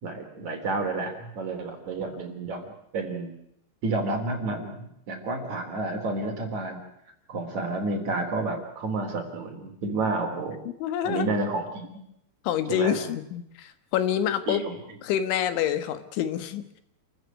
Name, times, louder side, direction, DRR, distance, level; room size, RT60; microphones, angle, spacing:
voice 1, 0.0-2.6 2.9-3.3 3.8-6.8 7.3-10.6 11.0-11.9 12.7-13.0 14.5-14.8, right 2 dB, 40° right, 3 dB, 4.5 m, -30 dB
voice 2, 10.8-11.3 12.5-14.6 15.0-16.8, left 10 dB, 90° left, 11 dB, 3.9 m, -27 dB
28.5 x 14.5 x 9.3 m, 0.76 s
omnidirectional pair, 5.2 m